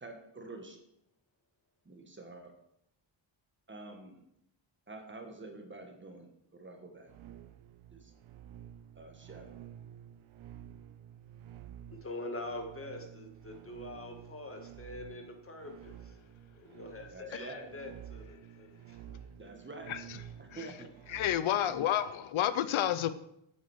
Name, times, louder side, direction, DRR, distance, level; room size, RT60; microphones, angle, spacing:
voice 1, 0.0-0.8 1.8-2.6 3.7-4.2 4.9-7.1 7.9-8.1 9.0-9.6 17.1-17.7 19.4-20.0 20.4-21.0 21.7-21.8, right 2 dB, 25° right, 1.5 m, -48 dB
sound 1, 7.1-21.9, right 10 dB, 85° right, 0.7 m, -51 dB
voice 2, 12.0-16.2 16.6-19.5, left 2 dB, 30° left, 1.7 m, -44 dB
voice 3, 19.9-20.2 20.5-20.7 21.1-23.1, left 11 dB, 85° left, 0.7 m, -30 dB
8.9 x 8.4 x 4.8 m
wide cardioid pair, 140°, 47 cm